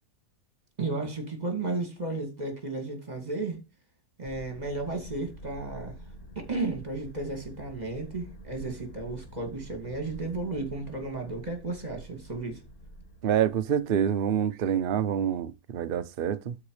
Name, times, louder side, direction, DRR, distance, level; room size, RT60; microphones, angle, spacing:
voice 1, 0.8-3.6 4.2-6.0 6.4-12.6, right 3 dB, 25° right, 2.6 m, -33 dB
sound 1, 4.2-14.2, right 1 dB, 65° left, 3.1 m, -47 dB
voice 2, 13.2-16.6, right 9 dB, 50° right, 0.7 m, -27 dB
12.0 x 4.7 x 4.9 m
omnidirectional pair, 1.7 m